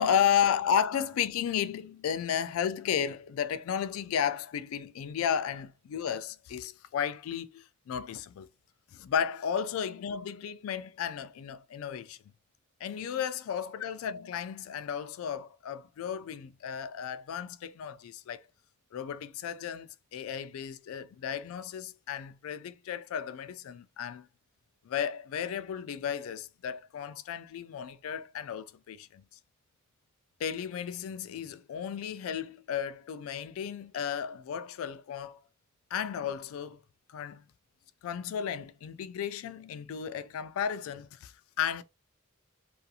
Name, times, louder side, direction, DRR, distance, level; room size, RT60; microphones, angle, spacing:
voice 1, 0.0-8.5 8.9-12.2 12.8-18.4 18.9-24.3 24.8-29.2 30.4-35.4 35.9-36.8 37.1-37.4 38.0-41.8, left 8 dB, 75° left, 0.3 m, -33 dB
2.4 x 2.3 x 2.7 m
head